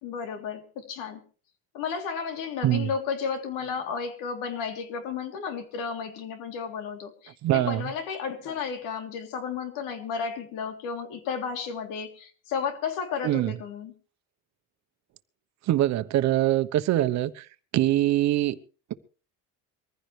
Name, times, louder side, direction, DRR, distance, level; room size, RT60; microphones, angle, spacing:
voice 1, 0.0-1.2 1.7-13.9, left 6 dB, 90° left, 3.4 m, -33 dB
voice 2, 7.4-7.8 13.2-13.5 15.7-17.5 17.7-18.6, right 14 dB, 55° right, 1.0 m, -23 dB
23.0 x 15.0 x 3.3 m
cardioid pair, 140°, 32 cm